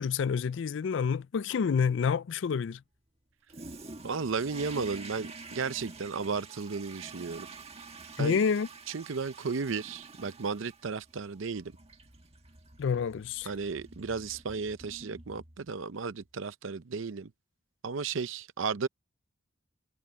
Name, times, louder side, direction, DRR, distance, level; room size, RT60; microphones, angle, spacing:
voice 1, 0.0-2.8 8.2-8.7 12.8-13.5, left 6 dB, 65° left, 0.4 m, -28 dB
Toilet flush, 3.5-15.8, right 3 dB, 30° right, 1.6 m, -48 dB
voice 2, 4.0-7.5 8.2-8.4 8.9-11.7 13.5-17.3 17.8-18.9, right 5 dB, 75° right, 0.6 m, -34 dB
head